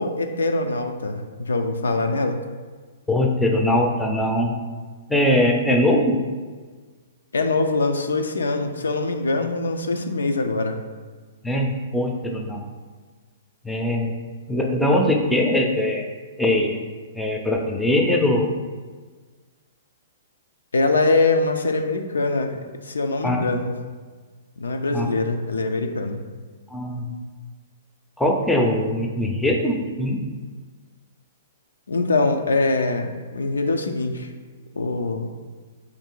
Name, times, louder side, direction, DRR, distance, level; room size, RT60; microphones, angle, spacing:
voice 1, 0.0-2.4 7.3-10.8 20.7-22.6 22.8-23.7 24.6-26.2 31.9-34.3 34.8-35.3, left 3 dB, 90° left, 5 dB, 0.4 m, -23 dB
voice 2, 3.1-4.5 5.1-6.2 11.4-12.6 13.6-14.1 14.5-16.1 16.4-16.8 17.1-18.5 23.2-23.5 24.9-25.1 26.7-27.1 28.2-30.2, left 1 dB, 5° left, 1 dB, 0.5 m, -21 dB
3.1 x 2.6 x 4.4 m, 1.5 s
hypercardioid pair, 130°, 0 cm